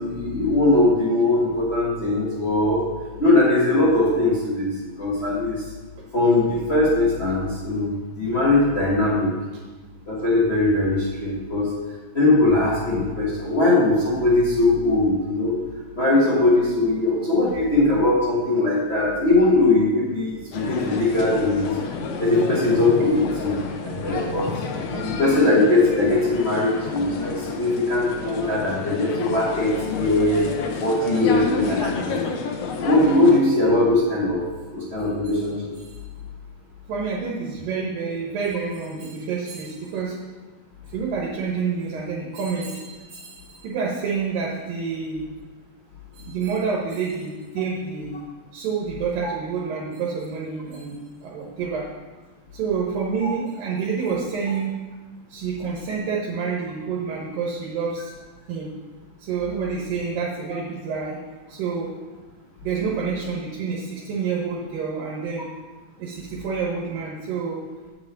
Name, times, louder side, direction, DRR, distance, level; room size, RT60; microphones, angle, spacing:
voice 1, 0.0-2.8 3.2-5.6 6.1-9.3 10.1-11.7 12.1-15.6 15.9-21.6 22.2-24.5 25.0-30.5 30.8-32.2 32.8-34.4 34.7-35.7, left 2 dB, 55° left, -7 dB, 0.7 m, -20 dB
sound 1, 20.5-33.4, left 5 dB, 70° left, 1.5 m, -30 dB
voice 2, 36.9-40.2 40.8-45.2 46.1-48.2 48.5-51.9 52.5-54.7 55.3-58.1 58.5-58.7 59.2-61.2 61.5-61.9 62.6-65.5 66.0-67.6, right 5 dB, 80° right, -4 dB, 2.9 m, -28 dB
8.7 x 4.8 x 7.4 m, 1.3 s
omnidirectional pair, 3.9 m